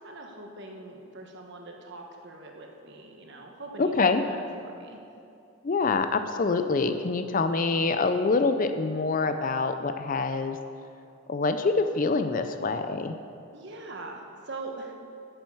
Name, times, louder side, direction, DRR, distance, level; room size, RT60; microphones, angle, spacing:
voice 1, 0.0-3.9 4.2-5.0 13.5-14.9, right 2 dB, 50° right, 1 dB, 1.3 m, -42 dB
voice 2, 3.8-4.2 5.6-10.6 11.3-13.2, left 4 dB, 35° left, 9 dB, 0.4 m, -25 dB
8.9 x 7.6 x 7.0 m, 2.6 s
head